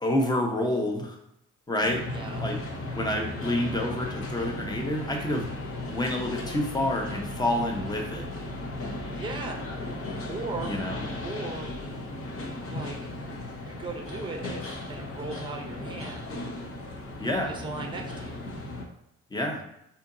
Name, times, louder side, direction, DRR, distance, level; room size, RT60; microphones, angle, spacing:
voice 1, 0.0-1.2 1.7-2.0 2.4-2.6 3.0-5.5 5.9-8.2 10.6-11.0 17.2-17.5 19.3-19.6, left 1 dB, 15° left, 1 dB, 0.8 m, -28 dB
sound 1, 1.8-18.9, left 1 dB, 45° left, 0.8 m, -36 dB
voice 2, 2.1-2.5 9.1-9.6 10.1-10.7 11.2-11.7 12.7-13.1 13.6-16.3 17.5-18.3, right 3 dB, 15° right, 2 dB, 0.7 m, -38 dB
4.2 x 2.8 x 2.6 m, 0.81 s
cardioid pair, 90°, 30 cm